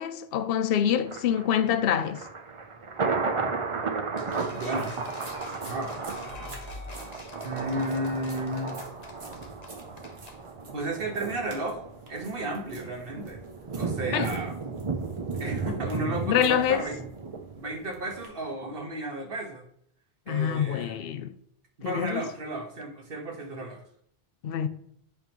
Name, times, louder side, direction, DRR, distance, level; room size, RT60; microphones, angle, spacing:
voice 1, 0.0-2.3 14.1-14.3 16.3-16.9 20.3-21.3 21.8-22.2 24.4-24.7, left 9 dB, 70° left, 0.8 m, -26 dB
Thunder, 1.1-18.2 18.6-18.7, right 4 dB, 35° right, 0.6 m, -34 dB
sound 1, 4.2-10.4, left 3 dB, 45° left, 0.9 m, -46 dB
sound 2, 4.3-18.3, right 1 dB, 90° right, 1.8 m, -50 dB
voice 2, 4.5-4.9 5.6-5.9 7.4-8.8 10.7-11.8 12.1-13.4 13.7-14.5 15.4-17.0 17.6-19.6 20.3-21.0 21.8-23.8, right 1 dB, 65° right, 1.6 m, -33 dB
8.1 x 5.2 x 3.0 m
omnidirectional pair, 1.0 m